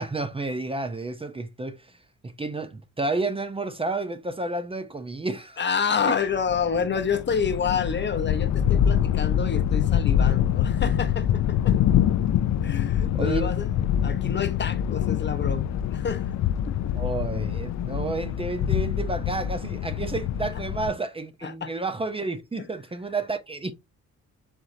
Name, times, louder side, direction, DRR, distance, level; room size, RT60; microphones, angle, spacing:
voice 1, 0.0-2.0 2.4-5.6 13.1-13.5 17.0-23.7, right 3 dB, 20° right, 0.7 m, -30 dB
voice 2, 5.6-11.8 12.6-13.7 14.0-16.3 16.7-16.9 21.4-21.7, left 6 dB, 35° left, 0.8 m, -28 dB
sound 1, 6.3-20.9, left 10 dB, 65° left, 0.5 m, -25 dB
4.6 x 3.7 x 2.7 m
cardioid pair, 90°, 30 cm